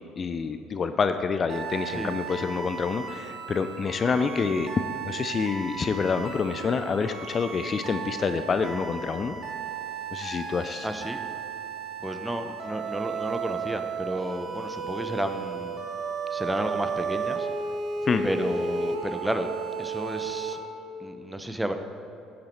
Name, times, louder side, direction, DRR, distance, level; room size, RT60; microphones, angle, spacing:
voice 1, 0.2-4.7 5.0-9.4 10.1-10.9 18.0-18.3, left 5 dB, 40° left, 9 dB, 0.5 m, -27 dB
sound 1, 1.5-20.5, right 5 dB, 55° right, 1.4 m, -34 dB
voice 2, 1.9-2.2 10.8-11.2 12.0-15.8 16.3-17.5 18.2-19.5 19.8-20.6 21.0-21.7, right 1 dB, 10° right, 7 dB, 0.9 m, -32 dB
10.0 x 8.6 x 4.5 m, 2.9 s
hypercardioid pair, 60°, 0 cm